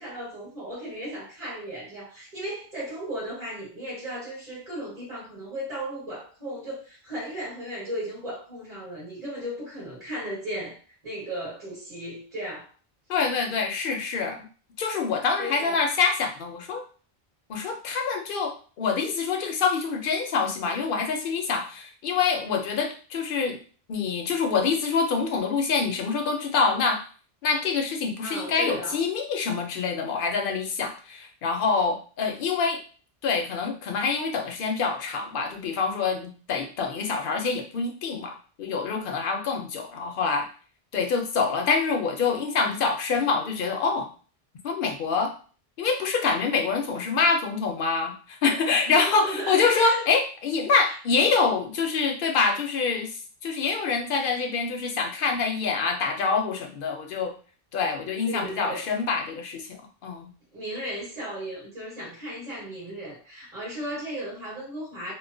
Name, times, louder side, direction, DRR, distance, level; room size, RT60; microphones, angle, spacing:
voice 1, 0.0-10.8 11.0-12.7 15.4-15.8 28.2-29.0 48.7-50.0 50.9-51.0 58.3-58.9 60.5-65.1, equal, 35° right, -9 dB, 1.6 m, -35 dB
voice 2, 13.1-14.5 14.8-16.8 17.5-23.6 23.9-27.0 27.4-32.8 33.2-40.5 40.9-44.1 44.6-45.3 45.8-57.3 57.7-59.8 60.0-60.3, left 5 dB, 65° left, 3 dB, 0.7 m, -26 dB
2.9 x 2.1 x 2.5 m, 0.39 s
omnidirectional pair, 1.0 m